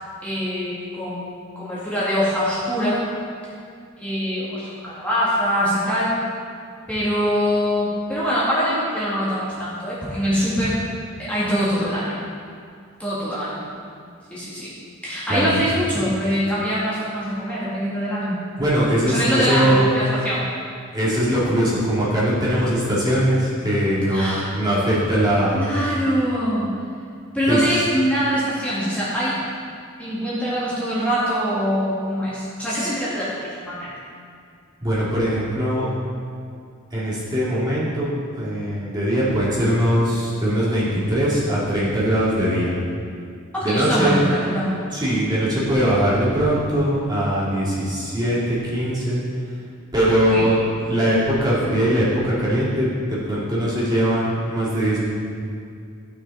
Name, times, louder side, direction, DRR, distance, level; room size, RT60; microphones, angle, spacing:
voice 1, 0.2-3.0 4.0-6.1 6.9-10.7 11.2-12.2 13.0-13.6 14.3-14.7 15.0-18.4 19.0-20.4 24.1-24.5 25.5-26.7 27.3-29.3 30.0-33.9 43.5-44.7 50.3-50.5, equal, 5° left, -10 dB, 2.1 m, -23 dB
voice 2, 18.6-19.9 20.9-25.7 27.5-27.6 32.7-32.9 34.8-35.9 36.9-38.1 38.4-42.7 43.6-44.2 44.9-49.2 49.9-50.6 50.9-55.0, equal, 20° right, -9 dB, 2.4 m, -21 dB
13.5 x 6.4 x 4.2 m, 2.3 s
head